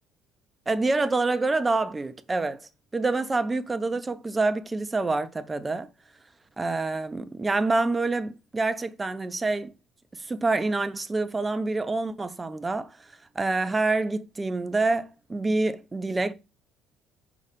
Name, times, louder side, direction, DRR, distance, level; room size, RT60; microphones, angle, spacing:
voice 1, 0.7-5.9 6.6-9.7 10.1-12.9 13.3-16.3, right 3 dB, 20° right, 0.8 m, -27 dB
5.0 x 4.0 x 5.2 m
supercardioid pair, 75°, 0 cm